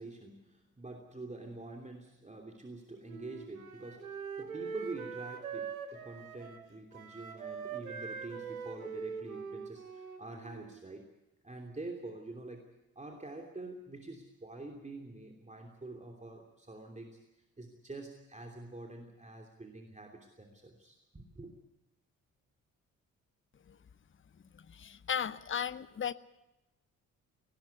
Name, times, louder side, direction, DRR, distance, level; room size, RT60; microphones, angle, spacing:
voice 1, 0.0-11.1 11.4-12.7 12.9-17.2 17.6-21.5, right 2 dB, 15° right, 2 dB, 3.1 m, -46 dB
Wind instrument woodwind instrument, 3.1-10.8, right 6 dB, 85° right, 1.3 m, -43 dB
voice 2, 24.7-26.1, left 8 dB, 30° left, 16 dB, 0.9 m, -35 dB
18.5 x 18.5 x 8.1 m, 0.95 s
figure-of-eight pair, 40°, 41 cm